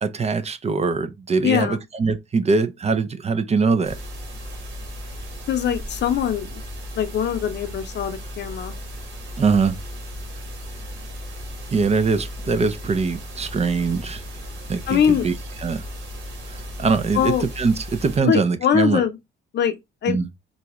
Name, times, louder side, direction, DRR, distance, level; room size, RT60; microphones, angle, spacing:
voice 1, 0.0-4.0 9.4-9.8 11.7-14.2 14.7-15.8 16.5-19.0 20.1-20.3, right 4 dB, 35° right, 0.5 m, -22 dB
voice 2, 1.4-1.8 5.5-6.6 7.0-8.7 14.9-15.3 17.1-17.4 18.2-19.1 19.5-19.8 20.0-20.2, left 8 dB, 60° left, 0.7 m, -22 dB
sound 1, 3.8-18.2, equal, 75° right, 1.5 m, -35 dB
3.9 x 2.3 x 2.9 m
cardioid pair, 90°, 20 cm